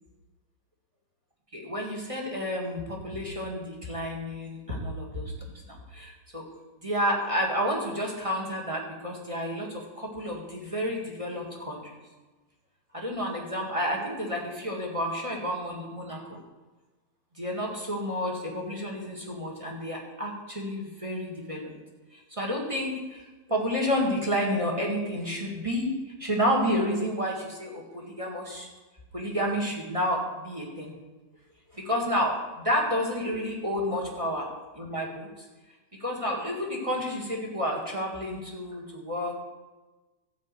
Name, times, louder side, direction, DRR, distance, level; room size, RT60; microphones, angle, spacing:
voice 1, 1.5-5.3 5.6-6.5 6.8-11.9 12.9-16.4 17.4-21.7 22.1-25.9 26.2-28.7 29.1-30.9 31.7-34.5 34.7-35.4 36.0-39.4, equal, 15° right, -2 dB, 1.2 m, -30 dB
13.5 x 5.2 x 8.3 m, 1.2 s
omnidirectional pair, 3.4 m